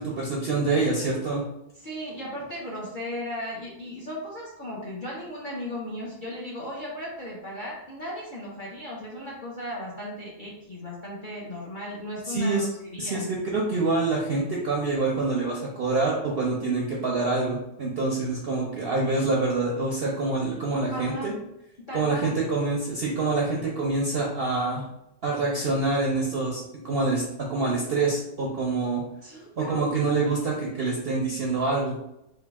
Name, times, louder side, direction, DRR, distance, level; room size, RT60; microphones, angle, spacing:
voice 1, 0.0-1.4 12.2-12.6 13.0-21.3 21.9-24.9 25.2-29.0 29.6-32.0, right 3 dB, 60° right, -3 dB, 0.6 m, -26 dB
voice 2, 1.8-13.3 20.9-21.5 21.9-22.3 29.2-29.9, left 1 dB, 50° left, -5 dB, 0.6 m, -36 dB
3.8 x 2.3 x 3.4 m, 0.84 s
omnidirectional pair, 1.7 m